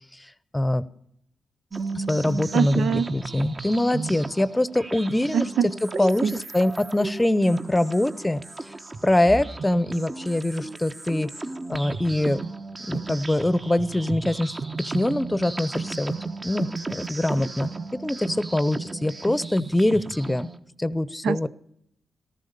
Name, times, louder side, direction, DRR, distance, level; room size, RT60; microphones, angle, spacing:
voice 1, 0.5-0.8 1.9-5.5 6.0-8.7 9.0-11.3 11.7-12.4 12.8-14.5 14.8-16.1 16.4-17.7 18.0-20.5 20.8-21.5, left 1 dB, 15° left, 0.8 m, -24 dB
sound 1, 1.7-20.6, right 3 dB, 35° right, 1.2 m, -35 dB
voice 2, 2.5-3.1 5.3-5.7 6.2-6.4 21.2-21.5, right 7 dB, 85° right, 0.5 m, -23 dB
14.0 x 12.0 x 6.8 m
cardioid pair, 60°, 0 cm